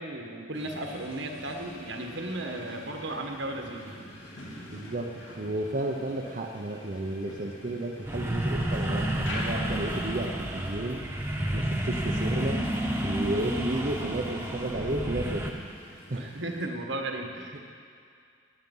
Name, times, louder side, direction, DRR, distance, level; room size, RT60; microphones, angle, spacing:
voice 1, 0.0-4.0 11.6-11.7 16.2-17.7, right 1 dB, 80° right, 2 dB, 1.6 m, -35 dB
sound 1, 0.5-16.7, left 1 dB, 85° left, 2.7 m, -46 dB
voice 2, 4.7-5.1 5.4-11.0 11.5-12.6 13.0-15.6 16.1-16.3, right 1 dB, 50° right, 0 dB, 0.8 m, -32 dB
sound 2, 8.1-15.5, right 1 dB, 15° right, 1.3 m, -30 dB
18.5 x 8.8 x 5.6 m, 2.3 s
head